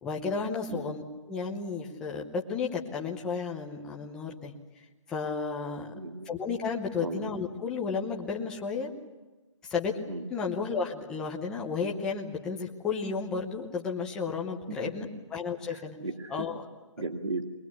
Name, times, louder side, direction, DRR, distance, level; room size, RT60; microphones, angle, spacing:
voice 1, 0.0-1.0 1.3-4.5 5.1-5.9 6.3-8.9 9.7-9.9 10.3-16.0 16.3-16.6, left 5 dB, 5° left, -1 dB, 0.8 m, -33 dB
voice 2, 5.9-6.3 7.0-7.3 10.1-10.2 14.7-14.8 15.7-16.5 17.0-17.4, right 3 dB, 70° right, 5 dB, 2.5 m, -36 dB
22.0 x 21.5 x 8.4 m, 1.2 s
hypercardioid pair, 175°, 16 cm